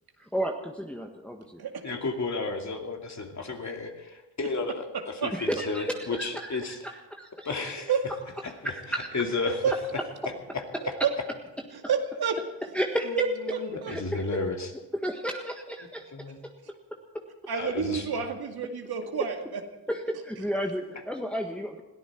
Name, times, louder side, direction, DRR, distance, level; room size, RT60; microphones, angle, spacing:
voice 1, 0.3-1.6 5.3-5.9 6.2-6.5 7.1-7.5 8.9-9.1 12.7-13.1 13.9-14.2 15.0-16.0 19.9-21.8, equal, 5° left, 2 dB, 1.5 m, -32 dB
voice 2, 1.8-6.7 7.4-7.9 8.4-8.7 9.1-9.6 9.9-10.0 10.5-10.6 13.0-14.7 16.1-16.4 17.6-18.3, left 4 dB, 40° left, 3 dB, 2.7 m, -33 dB
voice 3, 9.4-9.7 10.8-11.1 11.7-12.4 13.1-13.3 13.8-13.9 17.5-19.6, right 7 dB, 55° right, 4 dB, 2.3 m, -28 dB
21.5 x 14.0 x 4.6 m, 1.0 s
supercardioid pair, 65°, 45 cm